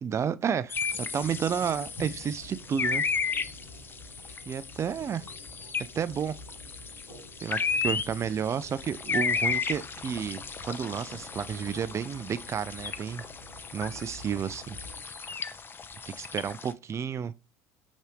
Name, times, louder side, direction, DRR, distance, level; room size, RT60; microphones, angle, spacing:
voice 1, 0.0-3.1 4.5-5.2 6.0-6.4 7.4-13.2 13.7-14.8 16.1-17.3, right 7 dB, 30° right, 0.4 m, -31 dB
sound 1, 0.7-16.7, left 5 dB, 25° left, 0.5 m, -34 dB
sound 2, 0.8-15.0, equal, 75° left, 3.1 m, -49 dB
6.0 x 2.7 x 3.3 m
hypercardioid pair, 70°, 9 cm